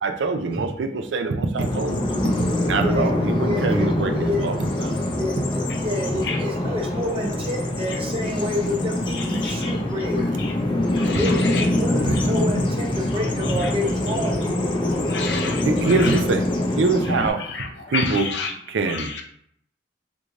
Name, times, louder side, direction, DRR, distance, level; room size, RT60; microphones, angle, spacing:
voice 1, 0.0-4.6 4.8-5.0 12.1-12.2 15.6-16.5 16.8-18.3 18.7-19.1, right 3 dB, 85° right, 6 dB, 0.4 m, -24 dB
Bird vocalization bird call bird song, 1.6-17.3, left 1 dB, 25° left, 0.5 m, -24 dB
voice 2, 2.8-4.5 5.1-10.3 11.1-14.5, left 1 dB, 30° right, 0 dB, 0.7 m, -28 dB
voice 3, 9.4-9.7 10.4-10.5 10.9-11.6 15.1-15.6 17.5-17.7 17.9-18.5 18.9-19.2, left 5 dB, 70° left, 3 dB, 0.6 m, -29 dB
3.6 x 3.2 x 2.5 m, 0.66 s
head